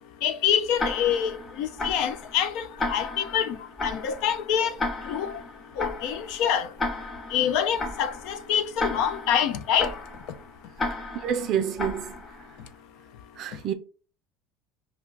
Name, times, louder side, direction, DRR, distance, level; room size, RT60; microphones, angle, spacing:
voice 1, 0.2-3.6 3.8-4.8 5.1-5.3 5.8-6.7 7.3-9.9, left 8 dB, 70° left, 0.3 m, -26 dB
Tick-tock, 0.8-12.6, left 2 dB, 20° left, 0.7 m, -34 dB
voice 2, 11.2-12.2 13.4-13.7, right 9 dB, 55° right, 0.4 m, -28 dB
2.3 x 2.2 x 3.7 m
supercardioid pair, 115°, 0 cm